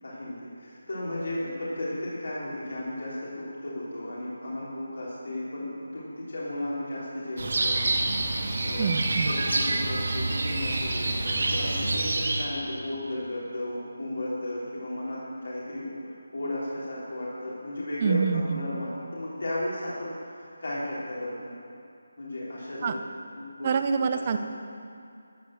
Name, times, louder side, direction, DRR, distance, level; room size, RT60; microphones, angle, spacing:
voice 1, 0.0-7.9 8.3-9.0 9.2-21.6 22.2-23.7 24.1-24.4, left 1 dB, 75° left, -8 dB, 3.6 m, -35 dB
sound 1, 7.4-12.5, right 2 dB, 55° right, 1.8 m, -27 dB
voice 2, 8.8-9.3 18.0-18.6 22.8-22.9 23.6-24.4, right 5 dB, 25° right, 8 dB, 0.5 m, -26 dB
14.0 x 6.7 x 7.4 m, 2.5 s
figure-of-eight pair, 175°, 0 cm